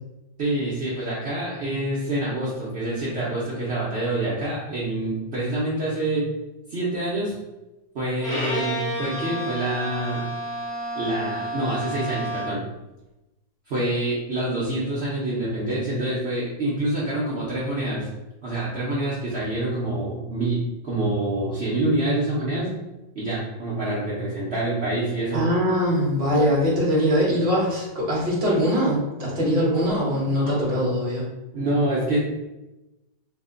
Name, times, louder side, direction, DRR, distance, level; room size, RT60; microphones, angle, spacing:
voice 1, 0.4-6.3 6.7-7.4 7.9-10.3 10.9-12.7 13.7-18.1 18.4-22.7 23.1-25.4 26.3-26.5 29.4-29.6 30.4-30.7 31.5-32.2, right 1 dB, 65° right, -7 dB, 0.6 m, -26 dB
Bowed string instrument, 8.2-12.7, right 1 dB, 45° left, 1.3 m, -30 dB
voice 2, 25.3-31.2, equal, 40° right, -5 dB, 1.0 m, -22 dB
3.1 x 2.1 x 3.7 m, 1.0 s
omnidirectional pair, 2.0 m